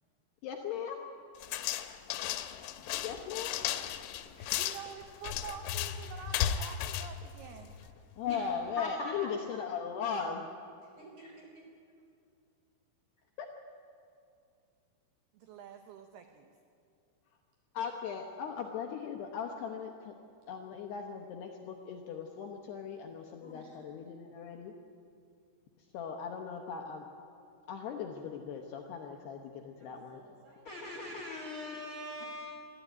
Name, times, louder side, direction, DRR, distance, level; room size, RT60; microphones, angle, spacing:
voice 1, 0.4-1.1 3.0-3.6 8.2-10.5 13.4-13.5 17.7-20.1 20.5-24.7 25.9-27.1 27.7-30.2, left 6 dB, 70° left, 2 dB, 2.7 m, -38 dB
sound 1, 1.4-8.0, left 10 dB, 90° left, 3.6 m, -35 dB
voice 2, 2.5-2.9 4.2-4.4 8.3-9.3 11.2-11.3 23.4-23.7 30.6-32.5, left 2 dB, 55° left, -2 dB, 1.5 m, -42 dB
voice 3, 4.6-8.0 15.3-16.5, right 8 dB, 80° right, 6 dB, 2.3 m, -47 dB
voice 4, 10.8-11.7 29.8-30.9, right 2 dB, 40° right, -2 dB, 6.2 m, -56 dB
24.5 x 13.5 x 9.3 m, 2.4 s
omnidirectional pair, 5.8 m